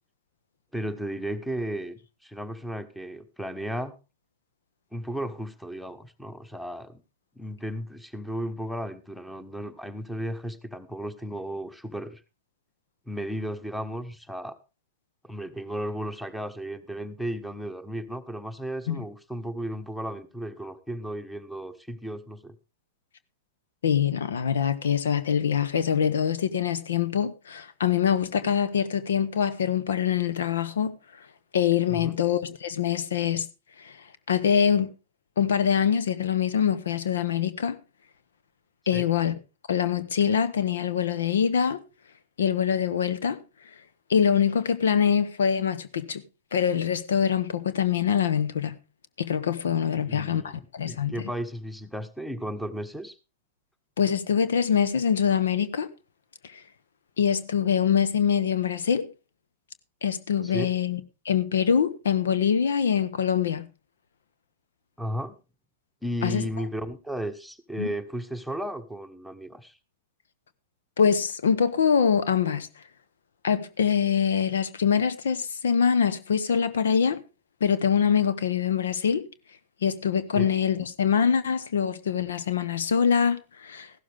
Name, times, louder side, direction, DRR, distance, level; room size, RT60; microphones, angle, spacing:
voice 1, 0.7-4.0 4.9-7.0 7.4-12.2 13.1-14.6 15.2-22.5 31.9-32.2 38.9-39.1 50.0-53.2 60.4-60.7 65.0-65.4 66.0-69.8 80.3-80.5, equal, ahead, 1.3 m, -34 dB
voice 2, 23.8-30.9 31.5-33.5 33.8-34.0 34.3-34.9 35.4-37.8 38.9-39.4 39.7-41.8 42.4-43.4 44.1-46.2 46.5-48.8 49.2-51.2 54.0-55.9 56.4-56.6 57.2-59.1 60.0-61.0 61.2-63.7 66.2-66.4 67.8-67.9 71.0-72.7 73.4-77.2 77.6-79.3 79.8-83.9, left 7 dB, 70° left, 0.9 m, -24 dB
15.0 x 12.5 x 3.5 m
figure-of-eight pair, 100°, 0 cm